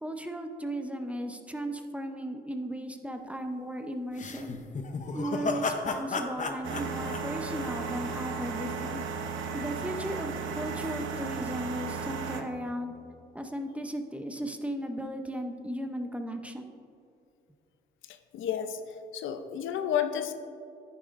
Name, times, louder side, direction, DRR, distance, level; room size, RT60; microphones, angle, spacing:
voice 1, 0.0-4.6 5.1-9.0 9.5-12.9 13.3-16.7, right 1 dB, 5° right, 5 dB, 0.7 m, -36 dB
sound 1, 4.2-8.3, left 3 dB, 40° left, 0.8 m, -33 dB
sound 2, 6.6-12.4, right 5 dB, 80° right, 0.9 m, -35 dB
voice 2, 18.3-18.8 19.1-20.3, left 9 dB, 80° left, 8 dB, 0.6 m, -30 dB
10.0 x 9.7 x 2.6 m, 2.6 s
cardioid pair, 90°, 20 cm